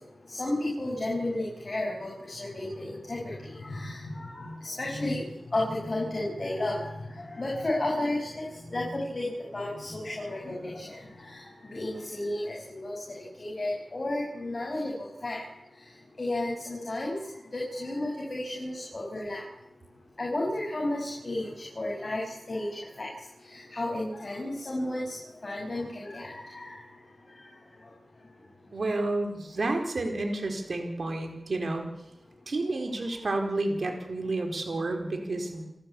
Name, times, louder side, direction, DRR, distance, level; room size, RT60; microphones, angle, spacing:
voice 1, 0.3-5.2 5.5-6.9 7.2-8.4 8.7-11.0 11.2-11.4 11.7-12.9 13.4-15.4 16.2-17.1 17.5-19.4 20.2-22.2 22.5-22.7 23.0-23.1 23.5-25.2 25.4-26.8, left 1 dB, 45° left, -2 dB, 6.1 m, -32 dB
voice 2, 28.7-31.9 32.5-35.6, right 2 dB, 65° right, 4 dB, 4.5 m, -30 dB
29.5 x 12.0 x 8.5 m, 0.88 s
wide cardioid pair, 75°, 0 cm